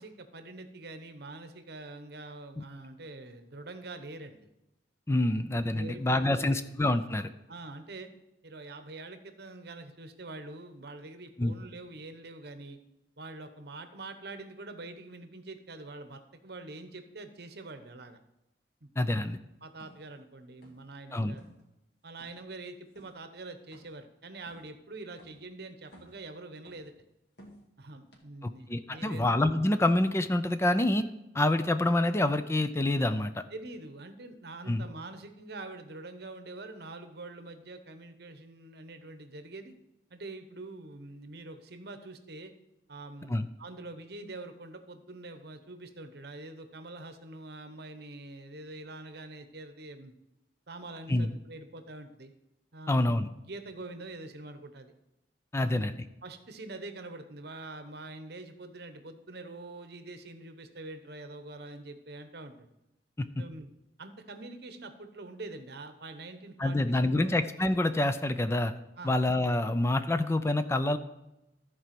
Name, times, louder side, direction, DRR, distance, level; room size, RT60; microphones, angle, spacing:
voice 1, 0.0-4.5 5.2-5.3 5.7-6.7 7.5-8.1 8.4-12.8 13.2-18.2 18.8-19.2 19.6-21.4 22.0-26.9 27.8-29.3 33.5-39.7 40.1-42.5 42.9-50.1 50.7-52.3 52.7-53.1 53.3-54.9 55.5-56.0 56.2-62.7 63.4-63.7 64.0-67.4 69.0-69.2, right 2 dB, 60° right, 8 dB, 1.0 m, -45 dB
voice 2, 5.1-7.3 11.4-11.5 19.0-19.4 21.1-21.4 28.4-31.1 31.3-33.4 34.7-34.9 43.3-43.5 51.1-51.3 52.9-53.3 55.5-55.9 63.2-63.3 66.6-68.7 69.0-71.0, left 1 dB, 15° left, 10 dB, 0.4 m, -27 dB
sound 1, 19.8-20.0 20.6-21.0 21.3-21.6 22.2-22.4 22.9-23.2 23.7-24.1 24.5-24.7 25.2-25.4 25.8-26.3 26.6-27.0 27.4-27.7 28.1-28.2, equal, 65° left, 2.3 m, -55 dB
14.0 x 4.7 x 5.9 m, 0.92 s
head